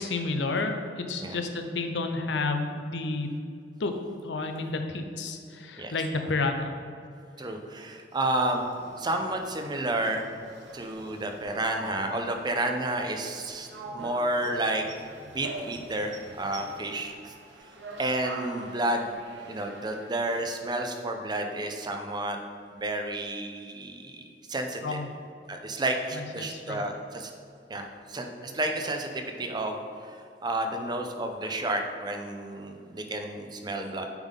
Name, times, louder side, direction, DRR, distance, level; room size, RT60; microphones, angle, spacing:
voice 1, 0.0-3.3 3.8-3.9 4.2-6.8 24.8-25.1 26.1-26.9, left 3 dB, 85° left, 5 dB, 0.6 m, -30 dB
voice 2, 7.4-8.6 9.0-10.3 10.7-14.9 15.3-17.3 18.0-19.1 19.5-22.4 22.7-25.0 25.5-27.3 27.7-34.1, right 1 dB, 25° right, 4 dB, 0.5 m, -31 dB
sound 1, 8.1-20.4, right 2 dB, 85° right, 0.8 m, -44 dB
8.9 x 3.7 x 3.6 m, 2.4 s
head